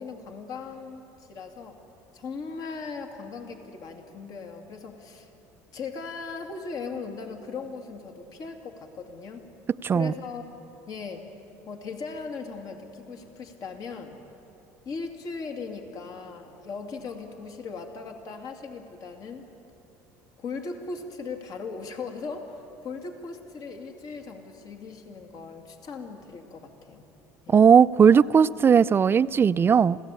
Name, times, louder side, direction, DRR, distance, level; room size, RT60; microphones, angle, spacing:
voice 1, 0.0-1.8 2.1-5.3 5.7-9.5 9.9-10.4 10.9-11.3 11.6-14.2 14.9-19.5 20.4-27.1 27.5-27.7, left 4 dB, 55° left, 4 dB, 2.5 m, -38 dB
voice 2, 9.8-10.1 27.5-30.0, right 7 dB, 30° right, 15 dB, 0.5 m, -18 dB
27.0 x 16.5 x 8.4 m, 2.9 s
supercardioid pair, 90°, 8 cm